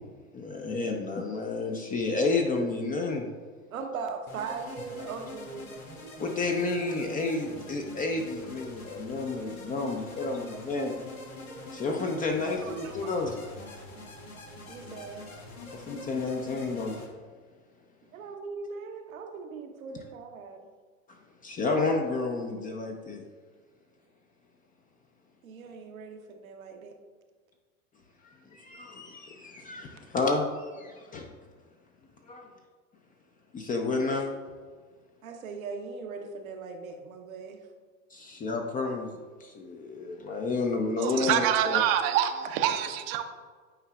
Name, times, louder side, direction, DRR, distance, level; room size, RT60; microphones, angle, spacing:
voice 1, 0.3-3.3 6.2-11.0 11.7-13.3 15.7-17.0 19.9-20.0 21.4-23.2 28.2-31.3 32.3-32.5 33.5-34.3 38.1-41.8, left 3 dB, 20° left, 2 dB, 0.5 m, -31 dB
voice 2, 3.7-5.8 8.7-8.9 9.3-9.6 10.7-10.8 12.4-13.1 14.7-15.3 18.1-20.7 25.4-26.9 35.2-37.7, right 5 dB, 80° right, 4 dB, 1.0 m, -40 dB
sound 1, 4.3-17.1, left 1 dB, 85° left, 1.5 m, -44 dB
voice 3, 41.0-43.2, right 10 dB, 45° right, 8 dB, 0.6 m, -26 dB
8.8 x 4.7 x 2.3 m, 1.5 s
hypercardioid pair, 90°, 41 cm